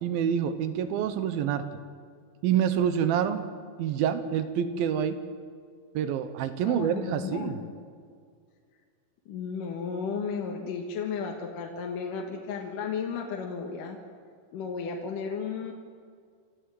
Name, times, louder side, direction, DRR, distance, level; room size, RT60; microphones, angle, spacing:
voice 1, 0.0-1.6 2.4-3.5 3.8-5.2 5.9-7.5, right 9 dB, 85° right, 10 dB, 2.7 m, -27 dB
voice 2, 6.6-7.7 9.3-14.0 14.5-15.7, left 5 dB, 65° left, 1 dB, 3.0 m, -34 dB
28.5 x 13.0 x 7.8 m, 2.1 s
omnidirectional pair, 4.2 m